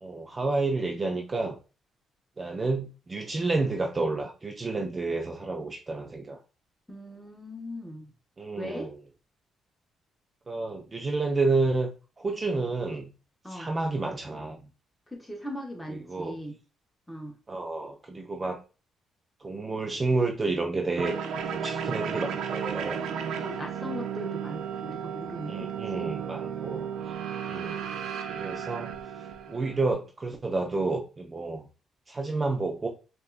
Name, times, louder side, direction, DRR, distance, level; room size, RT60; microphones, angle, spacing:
voice 1, 0.0-1.6 2.4-6.4 8.4-9.0 10.5-11.9 12.2-13.1 13.5-14.6 15.9-16.4 17.5-18.6 19.4-21.1 21.5-23.0 25.5-27.2 27.5-27.9 28.3-28.9 29.5-31.6 32.1-32.9, right 3 dB, 30° right, 3 dB, 0.6 m, -30 dB
voice 2, 6.9-8.1 8.6-8.9 13.4-13.7 15.1-16.6 17.1-17.3 23.4-26.1, left 1 dB, 5° left, 1 dB, 1.1 m, -39 dB
sound 1, 20.9-29.9, right 7 dB, 80° right, 0.5 m, -34 dB
5.2 x 2.6 x 2.4 m, 0.32 s
cardioid pair, 90°, 0 cm